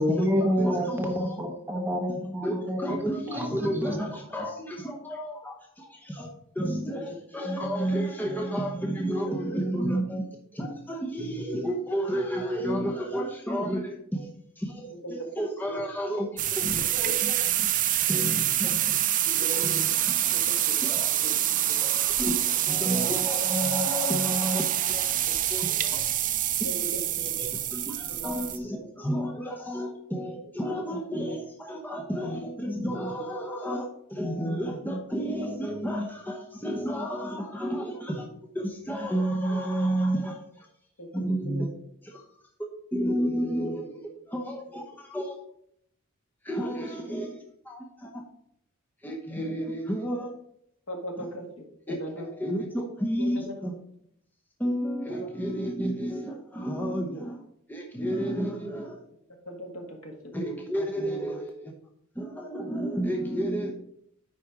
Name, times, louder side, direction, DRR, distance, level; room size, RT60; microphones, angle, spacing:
voice 1, 0.0-4.0, equal, 10° right, 2 dB, 1.0 m, -28 dB
voice 2, 0.6-1.4 2.4-6.3 6.5-10.3 10.5-14.3 14.6-17.7 18.1-20.4 20.8-21.2 21.8-25.1 25.5-26.1 26.6-26.7 27.2-38.3 38.5-40.7 41.1-41.7 42.0-42.2 42.6-45.4 46.4-47.4 47.6-48.2 49.0-50.3 51.9-53.7 54.6-57.4 57.7-59.0 60.3-61.7 62.1-63.7, equal, 10° left, 0 dB, 0.8 m, -31 dB
sound 1, 16.4-28.6, right 12 dB, 35° right, 0.5 m, -26 dB
voice 3, 26.6-27.4 28.1-28.2 41.0-41.7 46.6-47.0 50.9-52.3 53.2-53.5 55.1-55.3 59.5-60.5, equal, 70° left, 2 dB, 1.8 m, -39 dB
9.7 x 4.2 x 4.8 m, 0.71 s
head